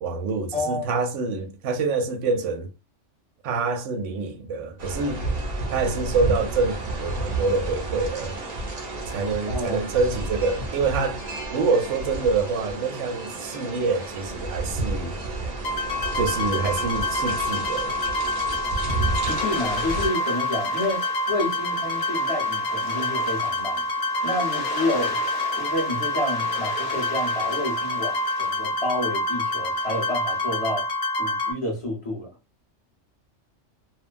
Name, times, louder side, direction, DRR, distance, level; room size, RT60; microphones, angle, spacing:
voice 1, 0.0-2.7 3.4-5.2 5.7-8.4 9.1-11.2 11.5-15.1 16.1-17.9, right 4 dB, 80° right, 0.9 m, -26 dB
voice 2, 0.5-0.9 9.5-9.8 19.3-21.0 21.3-23.9 24.2-30.9 31.2-32.3, left 1 dB, 25° left, 1.3 m, -29 dB
sound 1, 4.8-20.1, right 2 dB, 40° right, 0.8 m, -31 dB
sound 2, 15.6-31.5, left 1 dB, 60° left, 1.0 m, -27 dB
sound 3, 18.9-30.5, left 4 dB, 75° left, 0.3 m, -39 dB
2.8 x 2.3 x 2.4 m
omnidirectional pair, 1.2 m